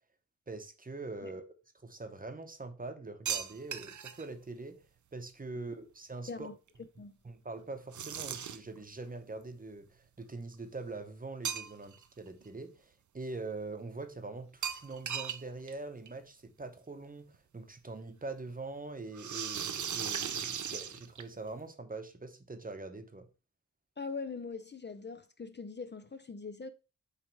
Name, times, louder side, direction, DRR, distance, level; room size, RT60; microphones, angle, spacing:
voice 1, 0.5-1.4 1.8-4.8 5.1-6.5 7.2-23.3, right 3 dB, 30° right, 0.8 m, -43 dB
sound 1, 3.3-4.2 7.9-8.8 11.4-12.0 12.4-12.5 14.6-15.4 15.7-15.8 16.1-16.2 17.3-17.4 19.1-21.5, right 8 dB, 75° right, 0.6 m, -37 dB
voice 2, 24.0-26.7, left 4 dB, 35° left, 0.5 m, -42 dB
7.5 x 3.2 x 4.6 m
wide cardioid pair, 110°, 30 cm